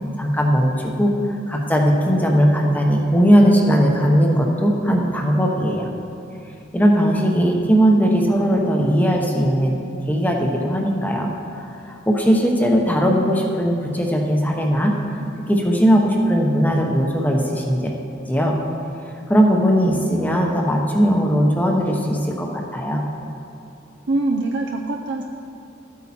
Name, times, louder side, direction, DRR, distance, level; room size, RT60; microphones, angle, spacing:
voice 1, 0.2-5.9 6.7-9.7 10.1-11.3 11.5-14.9 15.5-17.9 18.3-18.6 19.0-23.0, equal, 10° left, 0 dB, 0.9 m, -18 dB
voice 2, 24.1-25.2, right 2 dB, 55° right, 2 dB, 0.5 m, -23 dB
13.0 x 8.5 x 4.3 m, 2.7 s
head